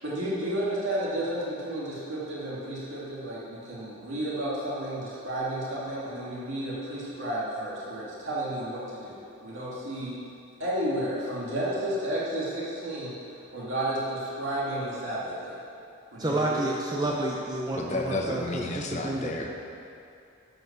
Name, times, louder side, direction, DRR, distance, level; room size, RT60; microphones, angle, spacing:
voice 1, 0.0-10.2 10.6-13.1 13.5-15.5 16.1-16.6, right 1 dB, 65° right, -7 dB, 2.3 m, -32 dB
voice 2, 16.2-19.3, right 1 dB, 20° right, -2 dB, 0.6 m, -30 dB
voice 3, 17.7-19.7, left 2 dB, 35° left, 2 dB, 0.9 m, -32 dB
11.5 x 5.7 x 6.7 m, 2.6 s
head